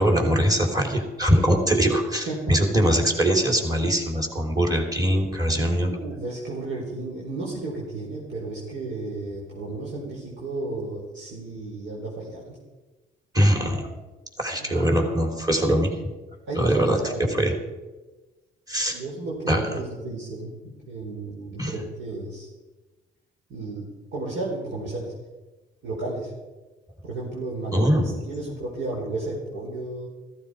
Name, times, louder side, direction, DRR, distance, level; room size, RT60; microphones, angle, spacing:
voice 1, 0.0-5.9 13.3-13.9 14.4-16.0 16.6-17.0 17.3-17.5 18.7-19.0 19.5-19.6 21.6-21.7 27.7-28.1, equal, 20° right, 3 dB, 3.6 m, -22 dB
voice 2, 2.3-2.6 5.9-12.6 14.6-14.9 16.5-17.4 18.9-20.5 20.9-22.5 23.5-23.9 24.1-25.1 25.8-26.3 27.0-30.1, right 2 dB, 70° right, -4 dB, 4.5 m, -33 dB
15.0 x 14.5 x 5.0 m, 1.2 s
cardioid pair, 90°, 20 cm